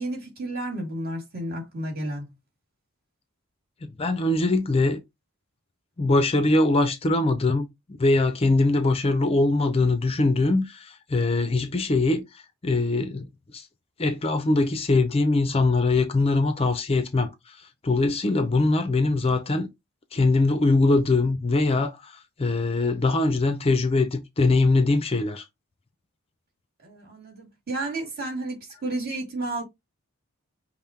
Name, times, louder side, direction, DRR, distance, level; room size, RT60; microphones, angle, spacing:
voice 1, 0.0-2.3 26.8-29.6, right 2 dB, 45° right, 2.0 m, -32 dB
voice 2, 3.8-5.0 6.0-7.7 8.0-13.3 13.5-13.7 14.0-17.6 17.8-19.7 20.1-25.4, left 2 dB, 25° left, 0.5 m, -22 dB
5.5 x 2.1 x 4.3 m
head